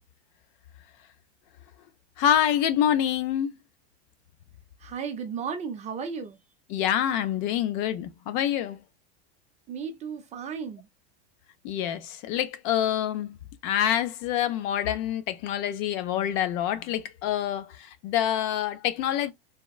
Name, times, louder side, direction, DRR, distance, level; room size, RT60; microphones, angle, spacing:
voice 1, 2.2-3.6 6.7-8.8 11.6-13.4 13.6-19.3, left 10 dB, 50° left, 0.5 m, -26 dB
voice 2, 4.8-6.4 9.7-10.9, right 6 dB, 20° right, 0.4 m, -34 dB
3.5 x 2.1 x 2.3 m
supercardioid pair, 135°, 33 cm